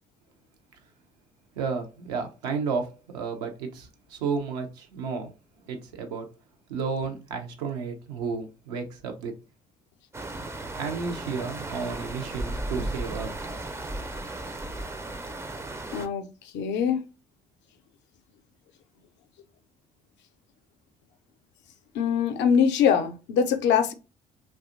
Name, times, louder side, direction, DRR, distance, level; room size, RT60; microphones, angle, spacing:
voice 1, 1.6-5.3 5.7-6.3 6.7-9.3 10.8-13.3, right 5 dB, 85° right, 0.5 m, -32 dB
sound 1, 10.1-16.1, right 2 dB, 15° right, 0.4 m, -35 dB
voice 2, 15.9-16.3 16.5-17.0 21.9-23.9, left 7 dB, 65° left, 0.5 m, -23 dB
2.7 x 2.2 x 2.4 m
hypercardioid pair, 45°, 20 cm